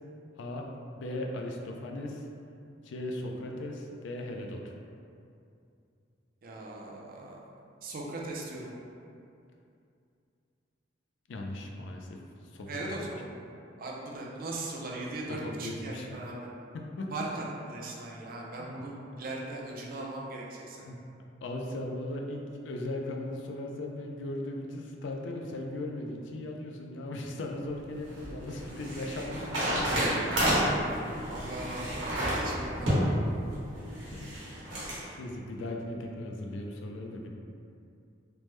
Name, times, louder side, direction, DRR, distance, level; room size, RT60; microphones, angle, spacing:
voice 1, 0.9-2.2 2.8-4.7 11.3-12.2 12.5-13.0 15.3-16.2 16.7-17.1 18.6-18.8 20.8-21.0 21.4-30.4 31.6-31.7 34.0-34.5 34.9-37.3, left 1 dB, 75° left, 1 dB, 0.3 m, -38 dB
voice 2, 6.4-7.4 7.8-8.7 12.7-13.3 13.8-16.4 17.1-20.9 30.3-31.0 31.3-33.1, right 2 dB, 50° right, -3 dB, 0.4 m, -39 dB
sound 1, 27.7-35.0, equal, 85° right, 1.1 m, -30 dB
3.3 x 2.1 x 3.0 m, 2.5 s
head